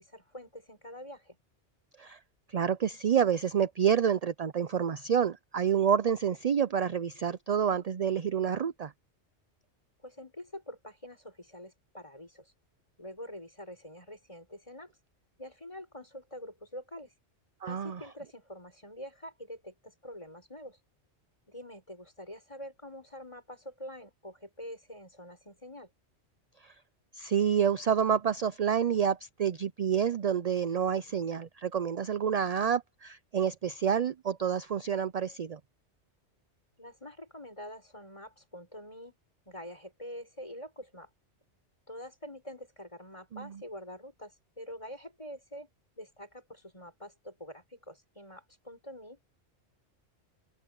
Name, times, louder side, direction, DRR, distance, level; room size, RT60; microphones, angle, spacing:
voice 1, 0.0-1.4 10.0-12.5 13.0-14.9 15.4-17.1 17.7-20.8 21.5-25.9 36.8-39.2 39.5-41.1 41.9-45.7 46.0-49.2, equal, 25° left, 6.9 m, -46 dB
voice 2, 2.5-8.9 17.6-18.0 26.6-26.7 27.1-35.6 43.3-43.6, right 8 dB, 50° right, 0.5 m, -28 dB
open air
omnidirectional pair, 1.2 m